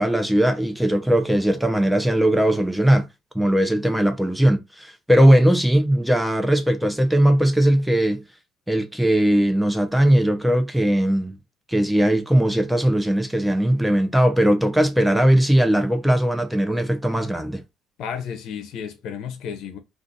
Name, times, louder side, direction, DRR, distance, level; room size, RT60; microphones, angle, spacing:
voice 1, 0.0-3.1 3.3-8.2 8.7-11.4 11.7-17.6, right 1 dB, ahead, 0.6 m, -19 dB
voice 2, 18.0-19.8, left 7 dB, 70° left, 0.6 m, -32 dB
2.5 x 2.4 x 3.9 m
cardioid pair, 100°, 0 cm